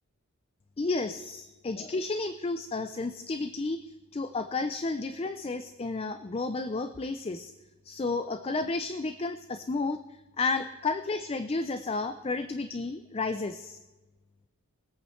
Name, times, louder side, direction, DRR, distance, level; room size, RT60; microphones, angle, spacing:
voice 1, 0.8-7.5 7.8-10.0 10.4-13.8, left 3 dB, 25° left, 9 dB, 0.4 m, -32 dB
22.0 x 8.4 x 3.2 m, 1.2 s
head